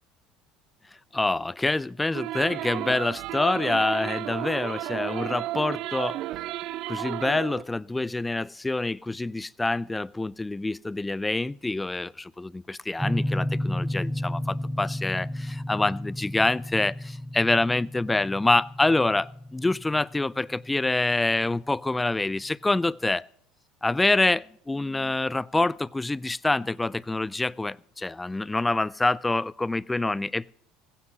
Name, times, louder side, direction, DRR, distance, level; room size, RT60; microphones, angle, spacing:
voice 1, 1.1-6.2 6.9-23.3 23.8-30.5, left 2 dB, 10° left, 0.4 m, -26 dB
sound 1, 2.1-7.6, right 15 dB, 60° right, 0.4 m, -33 dB
sound 2, 13.0-21.7, left 1 dB, 10° right, 1.1 m, -32 dB
16.5 x 15.5 x 2.8 m
hypercardioid pair, 85°, 0 cm